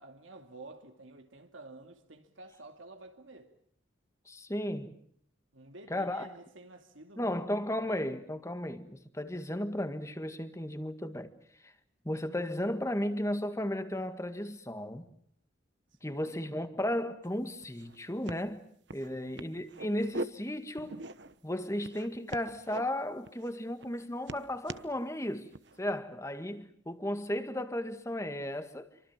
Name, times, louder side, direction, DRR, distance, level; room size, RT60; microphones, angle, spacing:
voice 1, 0.0-3.6 5.5-7.4 16.0-16.4 19.0-19.4, right 2 dB, 90° right, 2.6 m, -51 dB
voice 2, 4.3-4.9 5.9-6.3 7.2-11.3 11.6-11.7 12.0-15.1 16.0-18.6 18.9-21.0 21.4-25.5 25.8-28.9, left 1 dB, 15° left, 1.8 m, -34 dB
sound 1, 17.2-17.3 17.6-18.0 18.2-18.4 18.9-19.1 19.4-20.3 20.8-21.4 21.8-22.8 23.2-23.5 23.8-24.9 25.5-25.8, right 2 dB, 65° right, 1.2 m, -41 dB
28.0 x 24.5 x 7.4 m
head